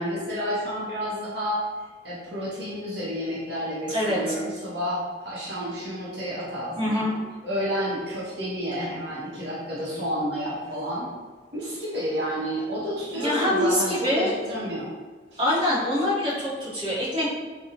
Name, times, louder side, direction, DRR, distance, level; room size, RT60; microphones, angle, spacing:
voice 1, 0.0-1.6 2.0-7.1 7.4-11.1 11.5-14.9 15.3-15.4, equal, 65° right, -8 dB, 0.9 m, -30 dB
voice 2, 3.9-4.3 6.8-7.1 13.1-14.5 15.4-17.3, left 1 dB, 30° right, -11 dB, 1.2 m, -25 dB
3.7 x 2.2 x 2.9 m, 1.4 s
head